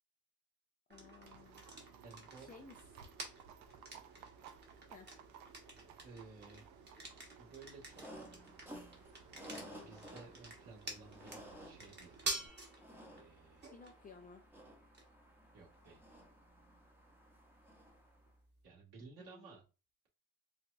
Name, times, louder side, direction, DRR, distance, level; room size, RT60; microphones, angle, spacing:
voice 1, 0.9-1.6 2.3-2.7 4.8-5.1 13.7-14.4 19.2-19.6, left 4 dB, 20° left, 1 dB, 0.3 m, -56 dB
sound 1, 0.9-18.6, right 2 dB, 20° right, 1.1 m, -50 dB
Livestock farm animals working animals, 1.2-12.5, right 8 dB, 85° right, 0.6 m, -60 dB
voice 2, 2.0-2.5 6.0-6.7 7.0-8.0 9.5-12.1 13.1-13.7 15.5-16.0 18.6-19.6, right 4 dB, 50° right, -3 dB, 1.9 m, -56 dB
sound 2, 7.9-18.2, equal, 5° right, 0.7 m, -55 dB
4.5 x 2.4 x 2.5 m, 0.32 s
cardioid pair, 115°, 46 cm